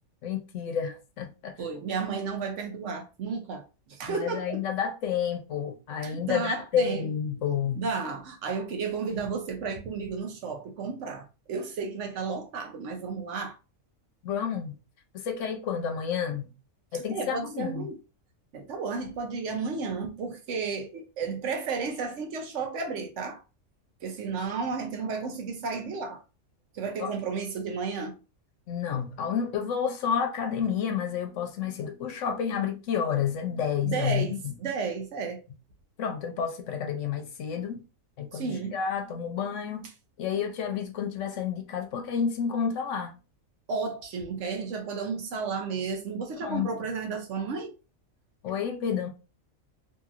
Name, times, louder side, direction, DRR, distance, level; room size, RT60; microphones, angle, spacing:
voice 1, 0.2-1.6 4.1-7.8 14.2-14.7 15.1-16.5 16.9-17.9 27.0-27.1 28.7-34.5 36.0-37.8 38.2-39.9 40.2-43.2 46.4-46.7 48.4-49.1, left 7 dB, 70° left, 0.9 m, -30 dB
voice 2, 1.6-4.6 6.0-7.0 7.8-13.6 17.1-18.0 18.5-23.4 24.0-26.2 26.7-28.2 33.8-35.4 38.3-38.8 43.7-47.7, right 5 dB, 65° right, 0.9 m, -33 dB
2.8 x 2.6 x 2.4 m
omnidirectional pair, 1.4 m